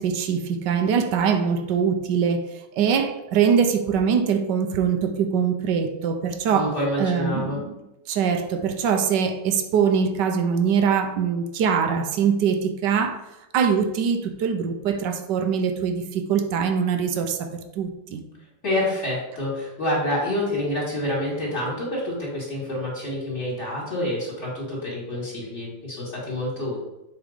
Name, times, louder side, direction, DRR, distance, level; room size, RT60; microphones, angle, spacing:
voice 1, 0.0-2.5 2.8-7.7 8.1-13.2 13.5-18.2, right 7 dB, 65° right, 1.2 m, -23 dB
voice 2, 6.5-7.6 18.6-26.8, left 1 dB, 35° left, 2.7 m, -27 dB
7.3 x 3.5 x 5.1 m
omnidirectional pair, 2.3 m